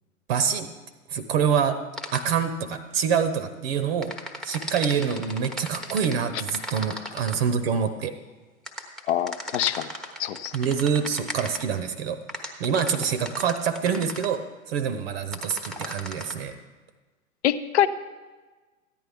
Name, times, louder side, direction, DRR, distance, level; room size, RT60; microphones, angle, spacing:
voice 1, 0.3-0.7 1.1-1.8 2.1-4.1 4.4-8.1 10.5-12.2 12.6-14.4 14.7-16.6, right 7 dB, 45° right, 11 dB, 0.8 m, -26 dB
sound 1, 2.0-2.2 4.0-7.4 8.7-11.6 12.3-14.3 15.3-16.3, equal, ahead, 0.8 m, -36 dB
voice 2, 9.1-9.9 10.2-10.5 17.4-17.9, left 11 dB, 55° left, 13 dB, 0.7 m, -24 dB
14.0 x 10.0 x 3.5 m, 1.3 s
figure-of-eight pair, 105°, 41 cm